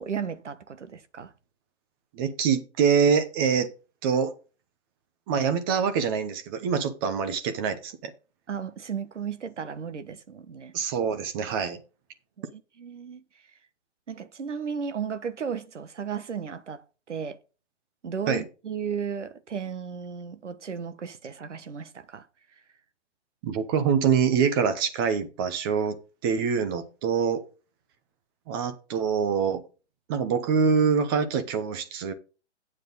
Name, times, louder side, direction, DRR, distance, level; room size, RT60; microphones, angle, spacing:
voice 1, 0.0-1.3 8.5-10.7 12.4-13.2 14.1-17.4 18.0-22.3, right 6 dB, 90° right, 1.2 m, -35 dB
voice 2, 2.1-3.7 4.0-4.3 5.3-8.1 10.7-11.8 18.3-18.4 23.4-26.0 26.2-27.4 28.5-29.6 30.1-32.1, right 6 dB, 20° right, 0.9 m, -25 dB
9.0 x 7.4 x 4.0 m
hypercardioid pair, 155°, 35 cm